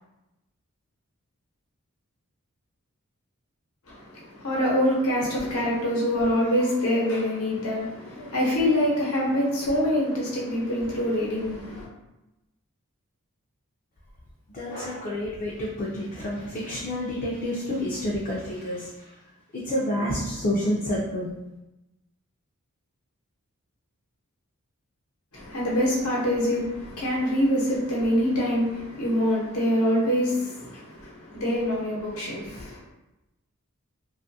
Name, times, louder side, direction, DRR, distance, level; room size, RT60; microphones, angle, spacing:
voice 1, 3.9-11.9 25.3-32.8, equal, 85° left, -5 dB, 0.9 m, -25 dB
voice 2, 14.5-19.1 19.5-21.3, left 1 dB, 40° left, -4 dB, 0.4 m, -29 dB
2.5 x 2.4 x 2.6 m, 0.97 s
head